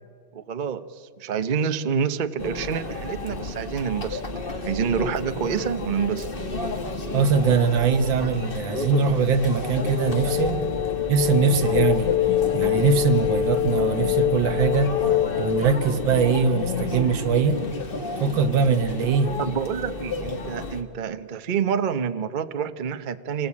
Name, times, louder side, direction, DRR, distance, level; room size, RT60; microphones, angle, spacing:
voice 1, 0.3-6.3 19.4-23.5, right 7 dB, 45° right, 0.6 m, -28 dB
Conversation / Chatter / Crowd, 2.4-20.8, left 3 dB, 30° left, 1.7 m, -31 dB
sound 1, 4.3-15.8, equal, 65° right, 6.0 m, -45 dB
voice 2, 7.1-10.6 11.1-12.1 12.5-15.0 15.4-17.7 18.2-19.4, right 5 dB, 85° right, 1.9 m, -22 dB
sound 2, 10.0-15.6, left 11 dB, 60° left, 0.4 m, -24 dB
27.0 x 20.5 x 8.5 m
omnidirectional pair, 2.0 m